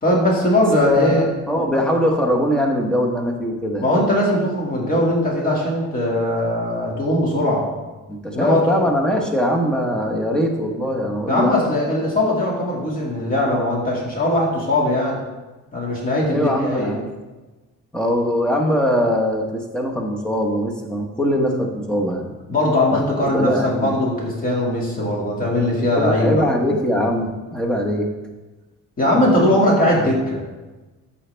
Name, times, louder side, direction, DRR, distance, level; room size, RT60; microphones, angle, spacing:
voice 1, 0.0-1.3 1.7-1.8 3.8-7.6 8.3-8.8 11.3-15.2 15.7-16.9 22.5-26.4 29.0-30.4, left 1 dB, 25° left, -3 dB, 2.2 m, -20 dB
voice 2, 0.8-3.9 8.1-11.7 16.3-17.1 17.9-22.3 22.9-23.0 23.3-23.9 26.0-28.1 29.4-29.5 29.8-30.2, equal, 5° left, 0 dB, 1.0 m, -21 dB
14.0 x 5.6 x 3.4 m, 1.2 s
cardioid pair, 170°, 31 cm